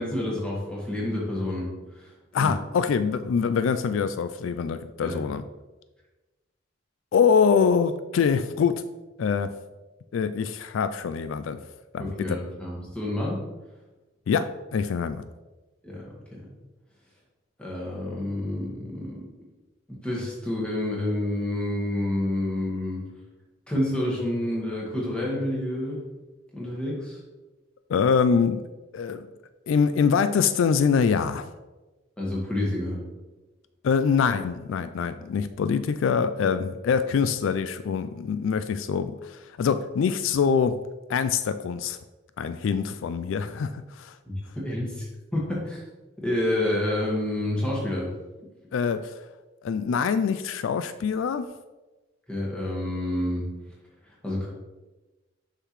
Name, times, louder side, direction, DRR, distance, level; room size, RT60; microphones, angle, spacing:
voice 1, 0.0-2.5 5.0-5.2 12.0-13.4 15.8-16.5 17.6-19.2 19.9-23.0 23.7-26.0 26.5-27.2 32.2-33.0 44.2-45.1 45.3-45.8 46.2-48.1 52.3-53.5 54.1-54.5, left 1 dB, 5° left, -5 dB, 1.6 m, -29 dB
voice 2, 2.3-5.4 7.1-8.8 9.2-9.5 10.1-11.6 11.9-12.4 14.3-15.2 27.9-28.7 28.9-29.3 29.7-31.5 33.8-40.8 41.1-42.0 42.4-44.2 48.7-49.2 49.6-51.5, left 6 dB, 80° left, 11 dB, 0.3 m, -24 dB
6.6 x 5.7 x 3.1 m, 1.2 s
head